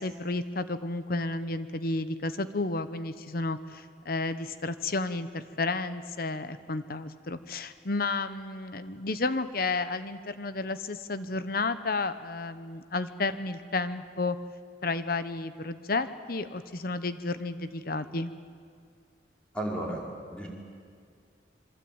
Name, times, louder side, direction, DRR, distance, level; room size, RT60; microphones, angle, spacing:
voice 1, 0.0-14.4 14.8-18.3, left 3 dB, 55° left, 12 dB, 1.0 m, -32 dB
voice 2, 19.5-20.5, right 1 dB, 5° left, -3 dB, 5.2 m, -34 dB
26.5 x 23.5 x 8.9 m, 2.2 s
head